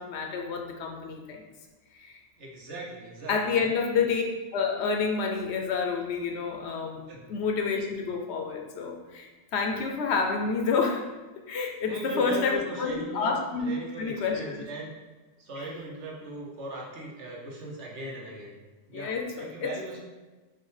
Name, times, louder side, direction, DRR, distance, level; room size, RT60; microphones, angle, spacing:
voice 1, 0.0-1.4 1.9-2.2 3.3-4.2 4.5-7.0 7.3-11.1 11.5-13.7 14.0-14.4 15.6-15.7 18.9-19.7, left 5 dB, 70° left, 2 dB, 0.8 m, -29 dB
voice 2, 2.4-3.7 7.1-7.3 11.8-13.3 13.6-14.9 15.4-18.5 18.9-19.1 19.4-20.1, right 1 dB, 70° right, -2 dB, 1.2 m, -38 dB
5.7 x 2.2 x 3.2 m, 1.2 s
omnidirectional pair, 1.2 m